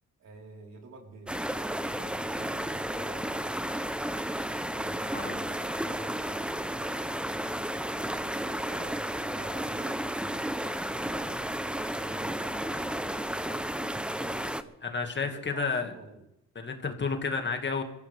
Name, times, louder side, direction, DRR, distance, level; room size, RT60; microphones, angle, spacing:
voice 1, 0.2-3.5 4.7-6.5 8.1-10.5 10.8-14.7 15.1-16.2, right 3 dB, 60° right, 0 dB, 4.2 m, -50 dB
sound 1, 1.3-14.6, right 1 dB, 5° right, 0.8 m, -33 dB
voice 2, 5.1-5.4 14.8-15.9 16.6-17.8, left 4 dB, 35° left, 5 dB, 2.1 m, -31 dB
23.0 x 14.5 x 3.5 m, 0.82 s
cardioid pair, 90°, 30 cm